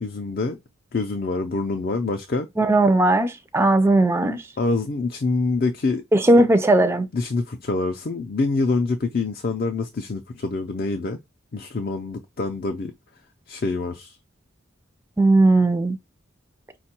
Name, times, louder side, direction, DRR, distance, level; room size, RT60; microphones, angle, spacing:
voice 1, 0.0-0.6 0.9-2.5 4.6-6.4 7.1-11.2 11.5-12.9 13.5-14.2, left 3 dB, 45° left, 0.5 m, -26 dB
voice 2, 2.6-4.4 6.1-7.1 15.2-16.0, right 2 dB, 10° right, 0.4 m, -17 dB
5.2 x 2.3 x 4.3 m
head